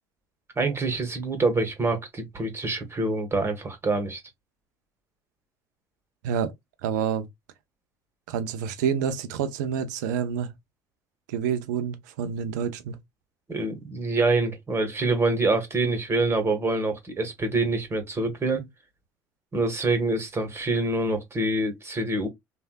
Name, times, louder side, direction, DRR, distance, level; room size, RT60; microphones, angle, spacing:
voice 1, 0.5-4.2 13.5-18.6 19.5-22.3, right 2 dB, 25° right, 1.5 m, -26 dB
voice 2, 6.8-7.3 8.3-10.5 11.3-13.0, right 7 dB, 85° right, 0.6 m, -28 dB
3.3 x 2.6 x 2.4 m
hypercardioid pair, 75°, 9 cm